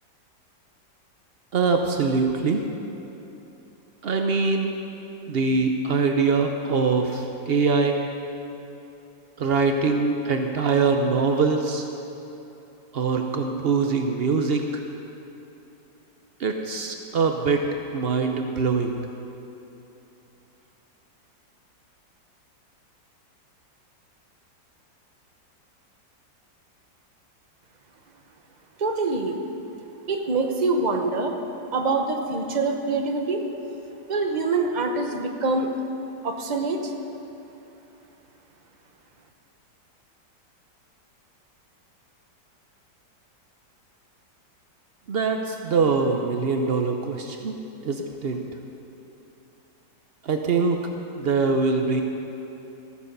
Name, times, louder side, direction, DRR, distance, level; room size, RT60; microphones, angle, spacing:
voice 1, 1.5-2.6 4.0-4.7 5.3-8.0 9.4-11.9 12.9-14.8 16.4-17.7 17.9-19.0 45.1-47.5 47.8-48.4 50.2-50.8 51.2-52.0, right 4 dB, 80° right, 4 dB, 0.5 m, -23 dB
voice 2, 28.8-29.4 30.1-31.4 31.7-33.4 34.1-35.7 36.2-36.9, right 3 dB, 40° right, 4 dB, 0.6 m, -25 dB
14.0 x 9.5 x 6.7 m, 3.0 s
omnidirectional pair, 2.0 m